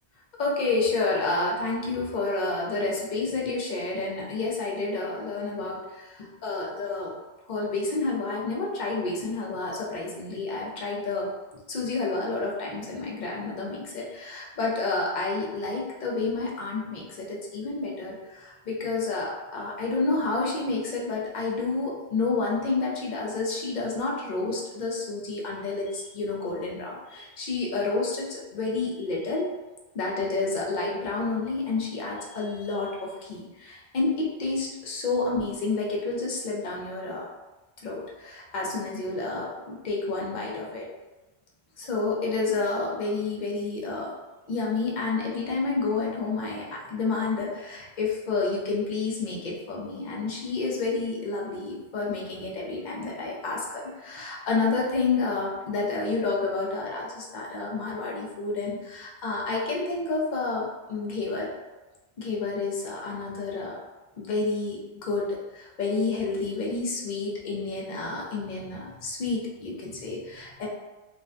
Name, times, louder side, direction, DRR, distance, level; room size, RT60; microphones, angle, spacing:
voice 1, 0.4-7.1 7.5-11.3 11.7-29.5 29.9-37.3 37.8-40.9 41.8-44.1 44.5-61.5 62.2-63.8 64.2-65.3 65.5-70.7, left 3 dB, 55° left, -3 dB, 0.6 m, -29 dB
2.4 x 2.1 x 2.4 m, 1.1 s
omnidirectional pair, 1.1 m